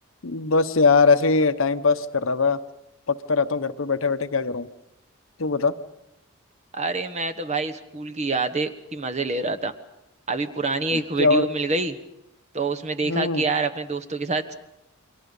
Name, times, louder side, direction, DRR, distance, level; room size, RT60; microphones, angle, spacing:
voice 1, 0.2-2.6 3.1-4.7 5.4-5.8 10.9-11.5 13.0-13.5, left 4 dB, 65° left, 11 dB, 0.9 m, -21 dB
voice 2, 6.7-9.7 10.3-12.0 12.5-14.5, right 3 dB, 30° right, 8 dB, 1.2 m, -26 dB
29.5 x 23.0 x 5.4 m, 0.90 s
head